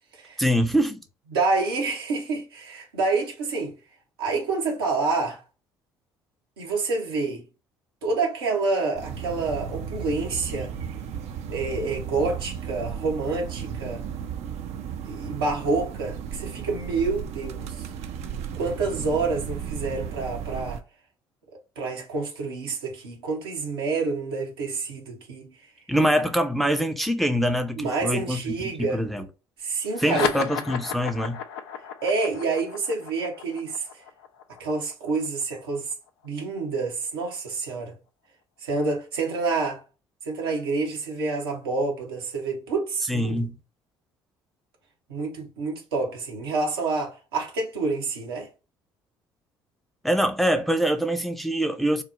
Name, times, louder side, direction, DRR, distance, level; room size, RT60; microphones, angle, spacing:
voice 1, 0.4-1.0 25.9-29.3 30.0-31.4 43.1-43.6 50.0-52.0, equal, ahead, 0.6 m, -24 dB
voice 2, 1.3-3.7 4.2-5.4 6.6-7.5 8.0-10.7 11.5-14.0 15.0-17.8 18.6-20.8 21.8-25.5 27.8-29.0 29.6-30.4 32.0-33.9 34.6-35.9 36.2-37.9 38.6-39.8 40.2-43.4 45.1-48.5, right 3 dB, 85° right, 0.9 m, -28 dB
sound 1, 8.9-20.8, right 7 dB, 60° right, 0.5 m, -35 dB
sound 2, 29.9-36.8, left 8 dB, 75° left, 0.5 m, -34 dB
3.1 x 2.0 x 3.6 m
hypercardioid pair, 55°, 13 cm